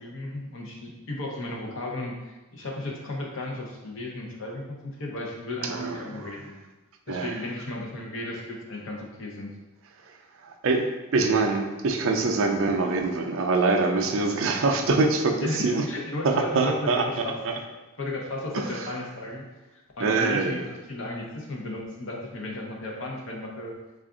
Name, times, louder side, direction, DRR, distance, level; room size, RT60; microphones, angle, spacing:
voice 1, 0.0-6.5 7.1-9.5 15.4-17.3 18.0-19.4 19.7-23.7, left 2 dB, 60° left, -1 dB, 0.7 m, -34 dB
voice 2, 5.6-6.3 7.1-7.4 10.1-10.2 10.4-15.8 16.2-17.6 18.5-18.9 20.0-20.7, right 3 dB, 60° right, 4 dB, 0.4 m, -25 dB
3.4 x 2.4 x 3.7 m, 1.1 s
head